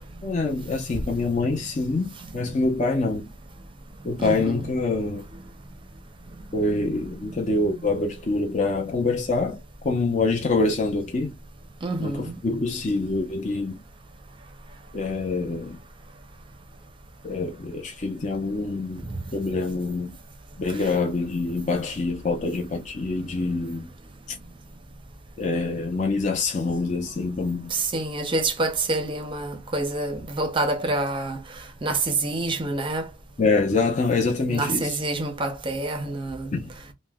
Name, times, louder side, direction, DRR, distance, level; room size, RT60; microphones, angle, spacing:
voice 1, 0.2-3.3 4.0-5.3 6.5-9.6 9.8-11.3 12.0-13.8 14.9-15.8 17.2-20.1 20.6-23.9 25.4-27.7 33.4-35.0 36.5-36.7, left 3 dB, 35° left, 0.5 m, -25 dB
voice 2, 4.2-4.6 11.8-12.4 19.1-19.2 27.7-31.4 31.8-33.1 34.5-36.6, right 2 dB, 25° right, 0.6 m, -27 dB
2.9 x 2.1 x 3.4 m
head